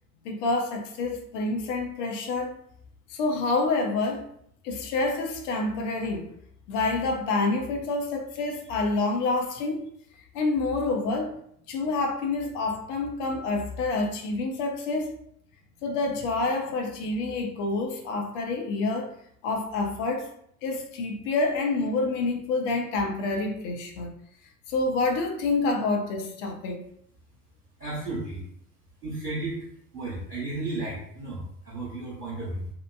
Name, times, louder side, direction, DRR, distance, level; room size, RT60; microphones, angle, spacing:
voice 1, 0.2-2.5 3.1-4.3 4.6-6.3 6.7-9.8 10.3-11.3 11.7-15.1 15.8-19.1 19.4-20.3 20.6-24.1 24.7-26.8, left 3 dB, 55° left, 2 dB, 0.7 m, -27 dB
voice 2, 27.8-28.5 29.0-29.6 29.9-32.7, right 2 dB, 90° right, -8 dB, 0.8 m, -33 dB
2.9 x 2.1 x 2.2 m, 0.68 s
figure-of-eight pair, 75°, 45 cm